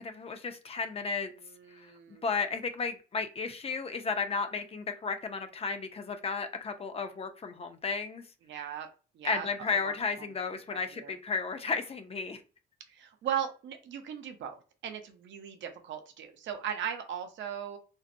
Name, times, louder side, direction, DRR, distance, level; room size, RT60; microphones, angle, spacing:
voice 1, 0.0-1.3 1.8-1.9 2.2-8.2 9.2-12.4, left 5 dB, 30° left, 8 dB, 0.4 m, -33 dB
voice 2, 1.7-2.2 8.5-8.9 9.1-9.9 10.9-11.1 12.9-17.8, right 9 dB, 70° right, 6 dB, 0.6 m, -38 dB
2.5 x 2.0 x 2.5 m, 0.35 s
cardioid pair, 90°, 20 cm